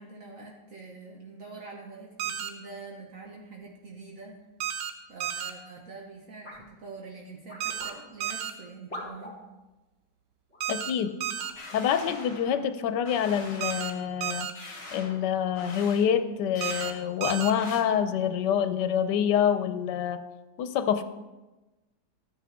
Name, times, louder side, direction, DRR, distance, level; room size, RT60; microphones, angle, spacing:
voice 1, 0.0-4.4 5.1-9.4, right 3 dB, 55° right, -1 dB, 1.5 m, -45 dB
sound 1, 2.2-2.5 4.6-4.9 5.2-5.5 7.6-7.9 8.2-8.5 10.6-10.9 11.2-11.5 13.6-13.9 14.2-14.5 16.6-16.9 17.2-17.5, right 10 dB, 85° right, 1.4 m, -32 dB
sound 2, 6.4-6.7 7.5-8.0 8.9-9.4 10.5-10.6 11.4-11.6, left 1 dB, 20° left, 3.1 m, -41 dB
voice 2, 10.7-11.1 11.7-14.5 14.9-20.2 20.6-21.0, left 8 dB, 85° left, 10 dB, 1.3 m, -26 dB
sound 3, 11.6-12.7 13.1-14.0 14.6-15.2 15.6-16.0 16.6-16.9 17.6-17.8, left 2 dB, 40° left, 1.7 m, -43 dB
12.5 x 9.4 x 3.6 m, 1.1 s
omnidirectional pair, 1.8 m